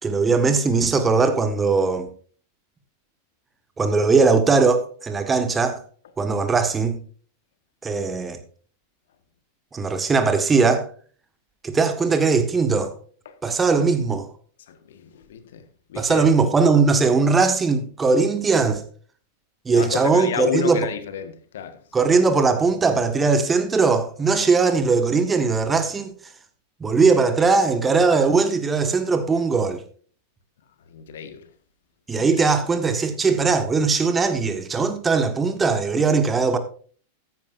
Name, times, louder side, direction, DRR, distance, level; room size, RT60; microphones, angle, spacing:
voice 1, 0.0-2.1 3.8-5.8 6.2-7.0 7.8-8.4 9.7-10.9 11.6-12.9 13.4-14.3 15.9-18.8 19.6-20.9 21.9-26.1 26.8-29.8 32.1-36.6, right 4 dB, 15° right, 1.5 m, -20 dB
voice 2, 14.7-15.6 15.9-16.2 19.7-21.8 30.9-31.4 32.1-32.5, left 8 dB, 60° left, 1.5 m, -31 dB
14.0 x 11.0 x 2.6 m
figure-of-eight pair, 90°, 0 cm